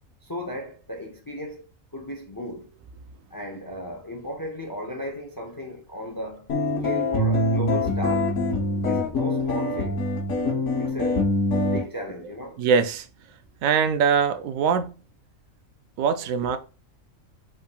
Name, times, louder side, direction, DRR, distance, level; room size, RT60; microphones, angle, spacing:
voice 1, 0.2-1.7 1.9-2.7 3.3-6.5 6.8-8.4 8.8-10.1 10.7-11.3 11.7-12.6, equal, 25° left, 0.4 m, -35 dB
sound 1, 6.5-11.8, left 2 dB, 65° left, 1.2 m, -24 dB
voice 2, 12.6-13.1 13.6-15.0 16.0-16.6, right 6 dB, 75° right, 1.0 m, -22 dB
5.5 x 3.7 x 2.2 m
omnidirectional pair, 1.4 m